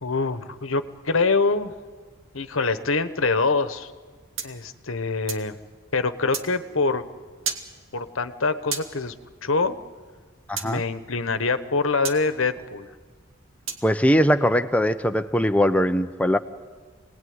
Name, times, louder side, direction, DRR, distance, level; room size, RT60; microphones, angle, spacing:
voice 1, 0.0-1.7 2.3-3.9 4.4-5.5 5.9-7.0 7.9-9.1 9.4-9.8 10.6-12.9, left 3 dB, 75° left, 11 dB, 1.2 m, -24 dB
sound 1, 4.4-5.5 6.3-6.5 7.4-7.7 8.7-8.9 10.6-10.7 12.0-12.2 13.7-13.9, right 6 dB, 75° right, 2.2 m, -31 dB
voice 2, 10.5-10.8 13.8-16.4, equal, 5° left, 9 dB, 0.8 m, -21 dB
27.5 x 19.5 x 9.6 m, 1.5 s
head